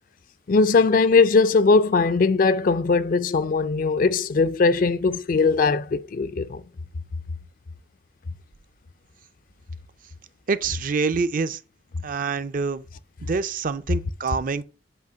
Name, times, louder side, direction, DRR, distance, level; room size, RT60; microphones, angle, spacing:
voice 1, 0.5-6.6, left 4 dB, 45° left, 0.4 m, -20 dB
voice 2, 10.5-11.6 12.0-12.8 13.2-14.6, right 4 dB, 45° right, 0.4 m, -26 dB
7.9 x 3.0 x 5.1 m
head